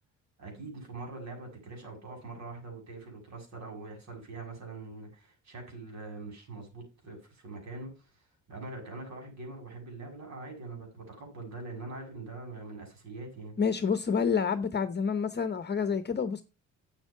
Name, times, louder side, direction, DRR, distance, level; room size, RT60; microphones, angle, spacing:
voice 1, 0.4-13.5, right 3 dB, 65° right, 7.3 m, -43 dB
voice 2, 13.6-16.4, left 6 dB, 35° left, 1.0 m, -28 dB
8.4 x 8.0 x 5.8 m
cardioid pair, 90°, 30 cm